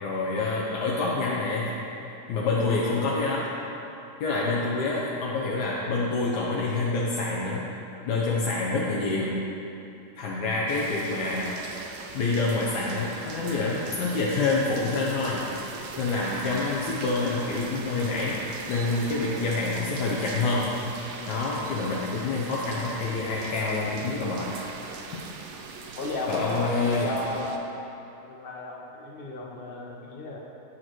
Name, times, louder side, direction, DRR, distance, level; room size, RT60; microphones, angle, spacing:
voice 1, 0.0-1.7 2.3-3.5 4.2-7.6 8.1-9.3 10.2-11.5 12.1-18.4 18.7-20.7 21.3-24.8 26.3-27.1, left 3 dB, 85° left, -5 dB, 1.3 m, -27 dB
sound 1, 10.7-27.6, right 4 dB, 65° right, 0.7 m, -40 dB
voice 2, 25.9-27.7 28.2-30.4, left 2 dB, 55° left, -1 dB, 0.6 m, -33 dB
9.2 x 6.3 x 3.0 m, 2.9 s
omnidirectional pair, 1.7 m